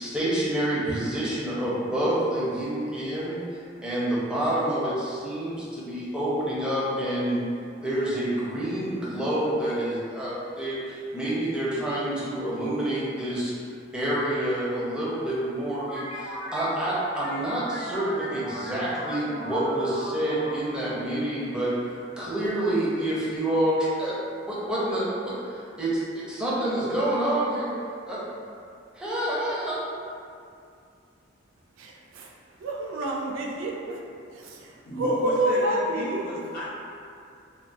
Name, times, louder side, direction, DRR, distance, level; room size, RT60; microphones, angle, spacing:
voice 1, 0.0-7.4 7.8-13.5 13.9-24.1 24.4-27.7 28.1-28.2 28.9-29.9, right 1 dB, 5° right, -9 dB, 0.5 m, -28 dB
sound 1, 15.7-22.0, left 1 dB, 90° left, 0.5 m, -37 dB
voice 2, 31.8-32.3 32.6-34.0 34.3-36.2, right 1 dB, 70° right, -1 dB, 0.3 m, -28 dB
voice 3, 34.9-36.6, equal, 45° left, -8 dB, 0.6 m, -34 dB
2.2 x 2.2 x 2.5 m, 2.4 s
head